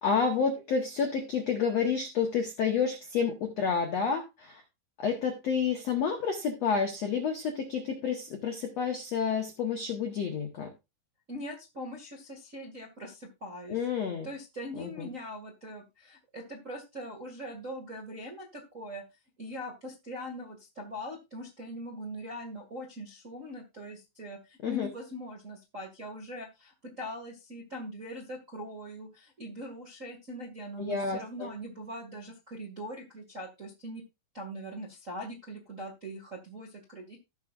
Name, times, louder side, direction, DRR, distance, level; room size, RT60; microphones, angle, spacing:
voice 1, 0.0-4.6 5.0-10.7 13.7-14.3 14.8-15.1 24.6-24.9 30.8-31.5, left 6 dB, 85° left, 3 dB, 1.4 m, -29 dB
voice 2, 11.3-13.8 14.2-19.0 19.4-34.0 34.3-37.2, equal, 40° right, -1 dB, 1.1 m, -41 dB
17.5 x 6.1 x 2.5 m, 0.24 s
omnidirectional pair, 5.4 m